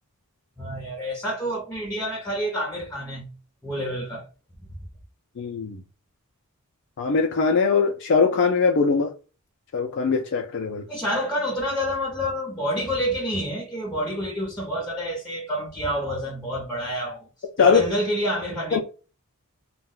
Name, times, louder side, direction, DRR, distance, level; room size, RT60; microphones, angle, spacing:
voice 1, 0.6-3.3 3.6-4.3 10.9-17.3 17.6-18.8, equal, 5° left, 0.7 m, -28 dB
voice 2, 5.4-5.8 7.0-9.1 9.7-10.8 17.6-17.8 18.7-18.8, left 5 dB, 55° left, 0.4 m, -21 dB
2.3 x 2.1 x 3.7 m
head